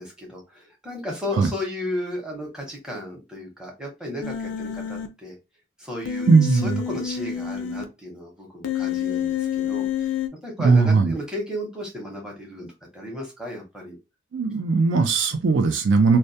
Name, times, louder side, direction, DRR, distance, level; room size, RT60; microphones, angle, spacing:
voice 1, 0.0-5.4 5.8-10.1 10.4-14.0, left 1 dB, 5° right, 0.8 m, -34 dB
Human voice, 4.2-5.1 6.1-7.8 8.6-10.3, left 8 dB, 65° left, 0.4 m, -28 dB
voice 2, 6.3-6.8 10.6-11.1 14.3-16.2, right 4 dB, 65° right, 0.4 m, -18 dB
2.2 x 2.2 x 2.6 m
head